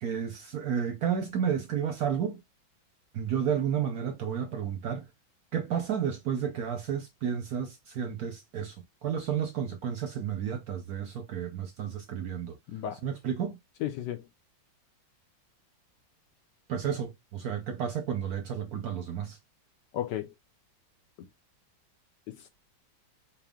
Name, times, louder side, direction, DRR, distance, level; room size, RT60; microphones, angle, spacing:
voice 1, 0.0-2.4 3.1-5.1 5.5-8.7 9.0-12.6 13.0-13.6 16.7-19.4, right 8 dB, 65° right, 0.9 m, -31 dB
voice 2, 12.7-13.0 13.8-14.3 19.9-20.3 22.3-22.5, left 11 dB, 70° left, 1.1 m, -34 dB
4.6 x 2.1 x 3.4 m
omnidirectional pair, 2.2 m